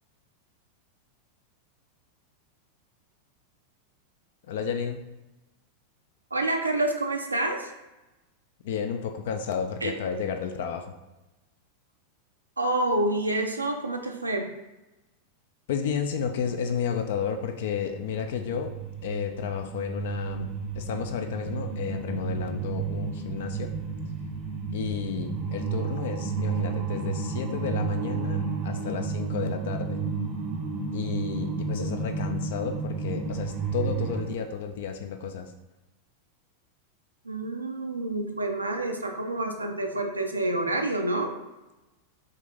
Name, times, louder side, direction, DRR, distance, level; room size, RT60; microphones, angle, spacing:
voice 1, 4.5-5.0 8.6-10.9 15.7-18.7 19.0-20.5 20.7-23.7 24.7-30.0 30.9-35.5, left 7 dB, 55° left, 6 dB, 0.3 m, -32 dB
voice 2, 6.3-7.7 9.8-9.9 12.6-14.5 31.8-31.9 37.3-41.3, right 2 dB, 80° right, 3 dB, 0.4 m, -28 dB
sound 1, 17.6-34.2, right 5 dB, 30° right, 0.6 m, -32 dB
3.8 x 2.5 x 3.4 m, 1.0 s
figure-of-eight pair, 90°, 0 cm